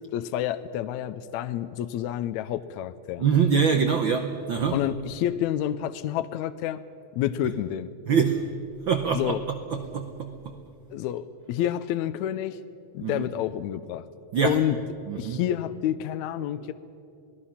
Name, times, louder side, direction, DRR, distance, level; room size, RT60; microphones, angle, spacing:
voice 1, 0.1-3.2 4.7-6.8 7.1-7.9 9.1-9.4 10.9-12.6 12.9-14.1 14.4-14.8 15.2-16.7, left 11 dB, 80° left, 12 dB, 1.8 m, -29 dB
voice 2, 3.2-4.8 8.1-8.5 8.8-10.6 13.0-13.3 14.3-14.6 15.1-15.4, right 6 dB, 80° right, 7 dB, 1.1 m, -25 dB
28.0 x 19.0 x 5.7 m, 2.6 s
omnidirectional pair, 3.5 m